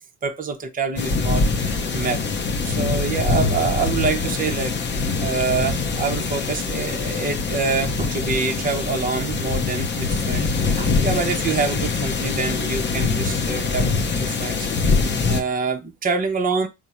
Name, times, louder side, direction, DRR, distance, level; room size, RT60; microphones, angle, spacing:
voice 1, 0.2-2.2 2.6-4.8 5.2-14.9 15.3-16.7, right 4 dB, 20° right, 0.7 m, -26 dB
sound 1, 1.0-15.4, left 4 dB, 25° left, 0.7 m, -23 dB
3.5 x 2.2 x 4.2 m
supercardioid pair, 80°, 44 cm